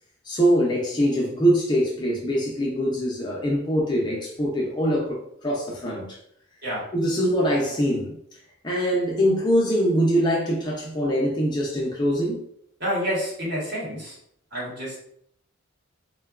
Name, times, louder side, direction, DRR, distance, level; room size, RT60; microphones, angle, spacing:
voice 1, 0.3-6.2 6.9-8.2 8.6-12.4, equal, 20° left, -2 dB, 0.4 m, -23 dB
voice 2, 12.8-14.2 14.5-15.0, equal, 50° right, -5 dB, 1.1 m, -28 dB
3.7 x 2.2 x 2.3 m, 0.71 s
head